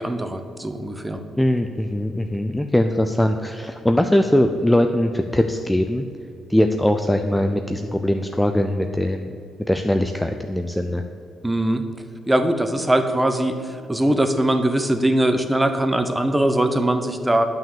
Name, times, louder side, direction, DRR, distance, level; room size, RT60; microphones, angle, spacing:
voice 1, 0.0-1.2 11.4-11.8 12.3-17.4, right 1 dB, 10° right, 7 dB, 0.9 m, -21 dB
voice 2, 1.4-6.1 6.5-9.3 9.7-11.0, left 1 dB, 5° left, 6 dB, 0.5 m, -21 dB
9.3 x 6.1 x 7.1 m, 2.5 s
cardioid pair, 90°, 0 cm